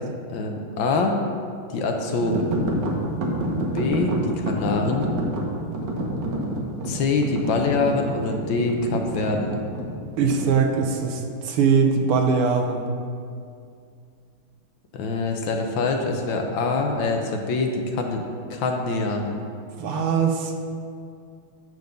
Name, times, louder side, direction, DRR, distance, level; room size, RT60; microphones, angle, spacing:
voice 1, 0.3-1.2 1.7-2.6 3.7-5.1 6.8-9.6 14.9-18.2 18.5-19.4, left 3 dB, 70° left, 2 dB, 1.4 m, -24 dB
sound 1, 2.2-10.6, right 1 dB, 60° right, 1.6 m, -28 dB
voice 2, 10.2-12.8 19.8-20.5, right 5 dB, 85° right, 4 dB, 1.8 m, -21 dB
10.5 x 3.9 x 6.7 m, 2.3 s
omnidirectional pair, 2.4 m